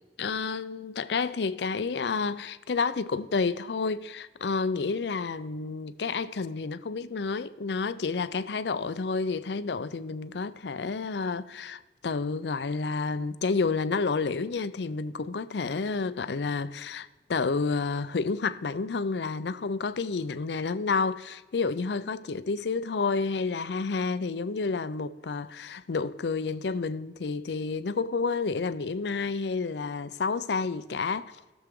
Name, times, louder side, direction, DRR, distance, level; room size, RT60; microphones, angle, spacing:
voice 1, 0.2-31.4, left 4 dB, 75° left, 0.5 m, -30 dB
18.5 x 7.1 x 3.7 m
head